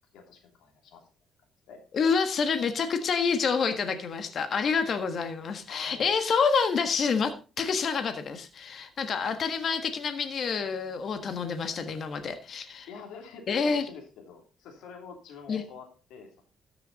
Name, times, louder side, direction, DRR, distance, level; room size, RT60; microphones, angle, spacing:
voice 1, 0.1-1.1 1.7-1.8 5.7-6.1 12.9-16.4, left 5 dB, 90° left, 3 dB, 3.0 m, -46 dB
voice 2, 1.9-12.9 13.5-13.8 15.5-15.6, left 5 dB, 55° left, 8 dB, 1.5 m, -28 dB
13.5 x 6.8 x 4.1 m, 0.34 s
cardioid pair, 90°, 0 cm